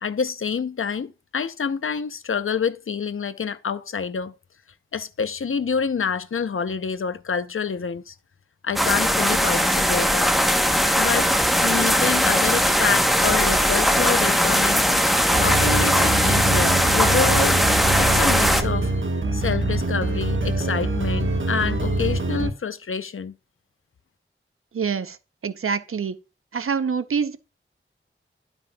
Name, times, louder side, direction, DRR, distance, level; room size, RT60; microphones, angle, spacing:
voice 1, 0.0-4.4 4.9-8.1 8.6-10.3 10.9-11.3 11.6-14.8 15.4-17.6 18.0-18.9 19.3-23.3, left 6 dB, 75° left, 0.6 m, -27 dB
sound 1, 8.8-18.6, equal, ahead, 0.9 m, -19 dB
sound 2, 15.3-22.5, right 2 dB, 65° right, 1.2 m, -24 dB
voice 2, 24.7-25.2 25.4-26.2 26.5-27.4, right 6 dB, 80° right, 0.6 m, -25 dB
11.5 x 5.3 x 2.2 m
wide cardioid pair, 75°, 21 cm